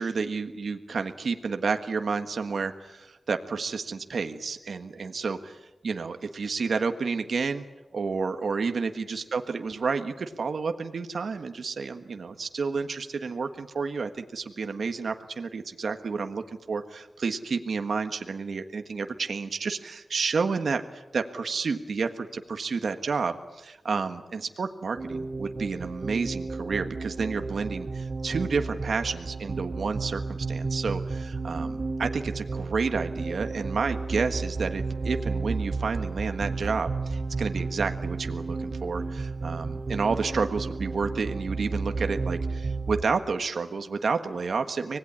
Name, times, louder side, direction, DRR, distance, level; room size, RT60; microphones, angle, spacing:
voice 1, 0.0-7.6 7.9-45.0, right 4 dB, 85° right, 7 dB, 1.5 m, -30 dB
sound 1, 25.0-43.1, right 3 dB, 65° right, 2.6 m, -32 dB
25.5 x 19.5 x 9.8 m, 1.1 s
cardioid pair, 45°, 0 cm